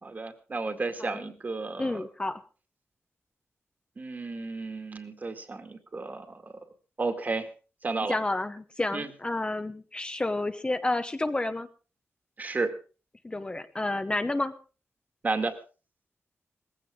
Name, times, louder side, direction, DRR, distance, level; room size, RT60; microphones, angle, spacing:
voice 1, 0.0-2.1 4.0-6.5 7.0-7.5 7.8-8.2 8.9-9.1 12.4-12.7 15.2-15.6, right 3 dB, 35° right, 7 dB, 2.0 m, -32 dB
voice 2, 1.8-2.3 8.1-11.7 13.2-14.5, left 2 dB, 20° left, 8 dB, 0.8 m, -30 dB
19.0 x 15.5 x 3.7 m, 0.36 s
wide cardioid pair, 130°, 5 cm